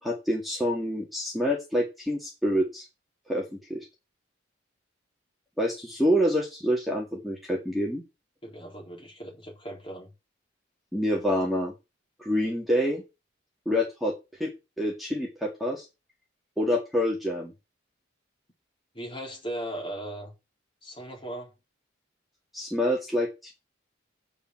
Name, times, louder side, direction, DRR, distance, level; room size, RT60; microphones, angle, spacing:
voice 1, 0.0-2.9 3.3-3.9 5.6-8.0 10.9-11.7 12.2-13.0 13.7-14.1 14.4-14.5 14.8-15.9 16.6-17.5 22.5-23.5, equal, ahead, 2.1 m, -27 dB
voice 2, 8.4-10.1 18.9-20.3 20.8-21.5, right 1 dB, 25° left, 4.1 m, -38 dB
7.0 x 6.8 x 8.0 m
head